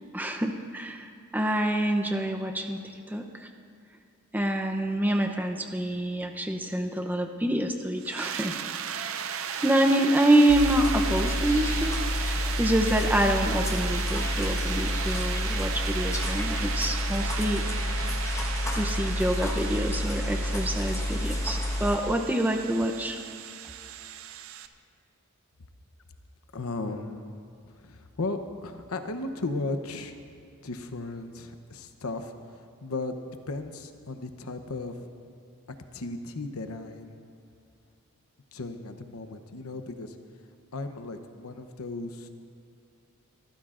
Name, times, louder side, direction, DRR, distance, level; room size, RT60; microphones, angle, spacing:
voice 1, 0.1-2.8 3.1-3.3 4.3-8.5 9.6-17.9 18.7-23.2, right 1 dB, 10° right, 4 dB, 0.7 m, -26 dB
sound 1, 8.0-24.7, right 7 dB, 70° right, 0.6 m, -36 dB
sound 2, 10.5-22.0, left 1 dB, 15° left, 1.2 m, -29 dB
voice 2, 26.5-27.4 27.7-30.2 30.6-35.1 35.9-37.2 38.5-40.2 40.7-42.3, left 2 dB, 85° left, 8 dB, 0.9 m, -36 dB
24.0 x 14.5 x 2.5 m, 2.5 s
head